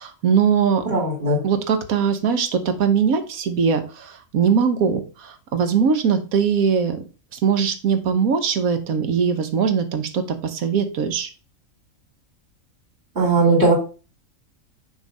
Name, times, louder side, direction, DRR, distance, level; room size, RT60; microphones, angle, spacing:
voice 1, 0.0-0.8 1.4-7.0 7.3-11.3, right 6 dB, 85° right, 8 dB, 1.4 m, -21 dB
voice 2, 0.8-1.4 13.1-13.7, right 2 dB, 50° right, 0 dB, 3.1 m, -18 dB
6.3 x 3.2 x 5.3 m, 0.34 s
omnidirectional pair, 1.4 m